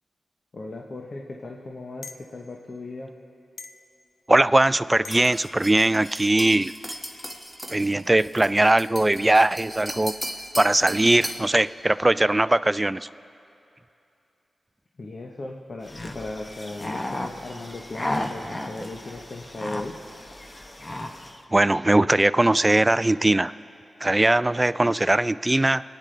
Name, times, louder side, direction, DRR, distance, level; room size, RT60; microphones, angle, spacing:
voice 1, 0.5-3.1 15.0-19.9, left 2 dB, 60° left, 0 dB, 1.0 m, -37 dB
sound 1, 2.0-2.3 3.6-3.9 5.0-5.3, left 4 dB, 80° left, 0.5 m, -41 dB
voice 2, 4.3-6.7 7.7-10.1 10.6-13.1 21.5-23.5 24.0-25.8, right 1 dB, 20° right, 16 dB, 0.3 m, -20 dB
sound 2, 5.1-11.5, equal, 5° left, 1.3 m, -37 dB
sound 3, 15.8-21.4, left 1 dB, 30° left, 1.0 m, -34 dB
27.0 x 9.7 x 3.4 m, 2.7 s
cardioid pair, 55°, 0 cm